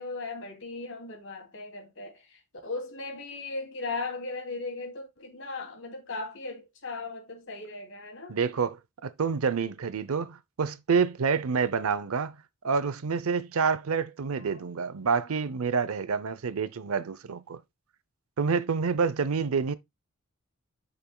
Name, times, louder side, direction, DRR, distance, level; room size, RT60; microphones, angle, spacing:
voice 1, 0.0-8.4 14.4-14.6, left 3 dB, 65° left, 2.6 m, -37 dB
voice 2, 8.3-12.4 12.6-17.6 18.4-19.7, right 5 dB, 90° right, 0.6 m, -28 dB
8.9 x 5.9 x 2.2 m
head